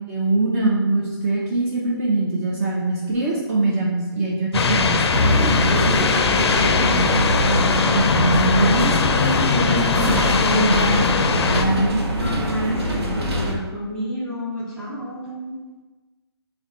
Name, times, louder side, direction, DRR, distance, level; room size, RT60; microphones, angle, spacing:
voice 1, 0.1-5.0 7.9-10.0 10.4-11.0 11.5-12.0, right 2 dB, 35° right, -4 dB, 0.6 m, -22 dB
sound 1, 4.5-11.6, left 5 dB, 80° left, 0.4 m, -20 dB
sound 2, 5.1-13.5, equal, 75° right, 0.9 m, -23 dB
voice 2, 5.6-7.1 9.8-10.8 11.7-15.6, equal, 5° left, -7 dB, 1.1 m, -30 dB
4.1 x 2.2 x 3.7 m, 1.3 s
hypercardioid pair, 145°, 14 cm